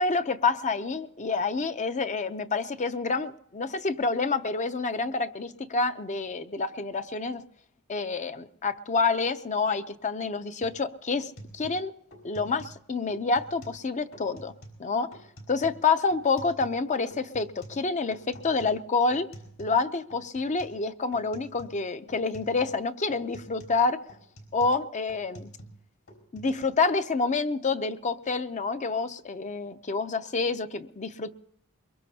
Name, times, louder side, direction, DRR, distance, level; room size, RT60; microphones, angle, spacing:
voice 1, 0.0-7.4 7.9-11.9 12.2-14.5 14.8-15.1 15.5-19.3 19.6-24.0 24.5-25.5 26.3-31.3, left 4 dB, 35° left, 11 dB, 0.6 m, -28 dB
sound 1, 10.6-10.8 11.1-12.8 13.1-13.8 14.1-14.8 15.1-16.8 17.1-19.8 20.1-20.8 21.1-21.8 22.1-22.8 23.1-25.8 26.1-26.6, right 1 dB, 65° left, 4.9 m, -48 dB
23.0 x 22.5 x 2.8 m, 0.75 s
head